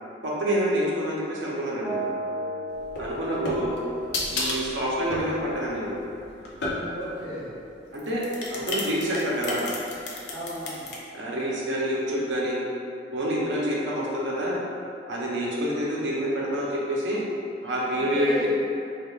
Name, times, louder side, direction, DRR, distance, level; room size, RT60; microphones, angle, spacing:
voice 1, 0.2-2.0 3.0-3.7 4.3-5.9 7.9-8.2 8.5-9.7 11.1-12.6 13.1-14.6 15.1-17.2 17.6-18.5, equal, 75° right, -5 dB, 0.7 m, -27 dB
sound 1, 1.8-5.8, right 2 dB, 35° right, 0.7 m, -36 dB
sound 2, 2.8-7.2 7.9-11.0, left 2 dB, 60° left, 0.5 m, -32 dB
voice 2, 6.9-7.5 10.3-10.9 17.9-18.5, equal, 20° right, -15 dB, 1.2 m, -35 dB
3.4 x 3.4 x 2.4 m, 2.6 s
head